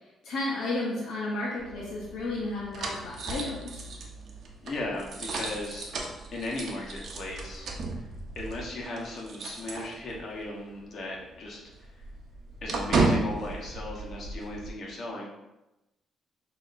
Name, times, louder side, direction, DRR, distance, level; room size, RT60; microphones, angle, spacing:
voice 1, 0.2-3.8, left 2 dB, 80° left, -5 dB, 0.9 m, -32 dB
sound 1, 1.6-10.4 10.7-10.9 11.2-14.7, right 3 dB, 60° right, 0.7 m, -34 dB
voice 2, 4.6-5.9 6.3-7.7 8.0-8.1 8.3-11.6 11.9-12.0 12.6-15.3, left 2 dB, 55° left, -3 dB, 1.2 m, -36 dB
6.3 x 2.8 x 2.6 m, 0.97 s
cardioid pair, 90°, 0 cm